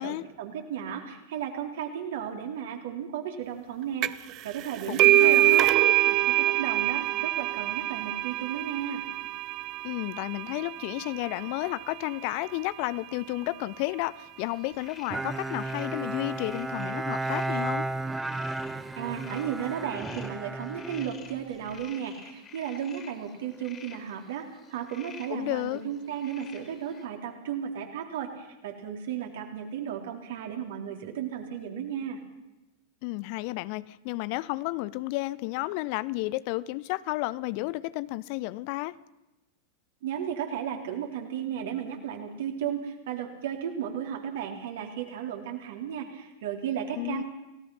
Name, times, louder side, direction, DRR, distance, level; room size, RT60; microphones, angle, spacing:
voice 1, 0.0-5.7 6.1-9.0 19.0-32.2 40.0-47.2, right 9 dB, 55° right, 2 dB, 4.0 m, -34 dB
sound 1, 4.0-4.3 4.6-11.9, right 15 dB, 40° right, 0.8 m, -24 dB
voice 2, 4.9-5.7 9.8-17.9 25.3-25.8 33.0-39.0 47.0-47.2, left 19 dB, 45° left, 18 dB, 0.7 m, -32 dB
sound 2, 14.4-27.1, left 6 dB, 25° left, 3.6 m, -51 dB
Bowed string instrument, 15.1-21.8, right 2 dB, 10° right, 1.0 m, -33 dB
30.0 x 18.0 x 5.8 m, 0.99 s
figure-of-eight pair, 90°, 0 cm